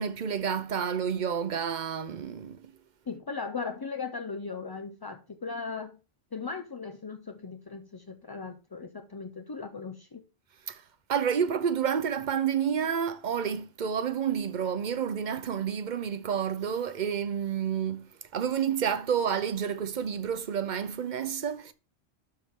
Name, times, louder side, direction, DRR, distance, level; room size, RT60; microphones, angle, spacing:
voice 1, 0.0-2.7 10.7-10.8 11.1-18.1 18.3-21.7, right 7 dB, 50° right, 0.7 m, -29 dB
voice 2, 3.1-5.9 6.3-10.2, left 4 dB, 30° left, 0.4 m, -38 dB
12.0 x 4.5 x 3.6 m
omnidirectional pair, 1.1 m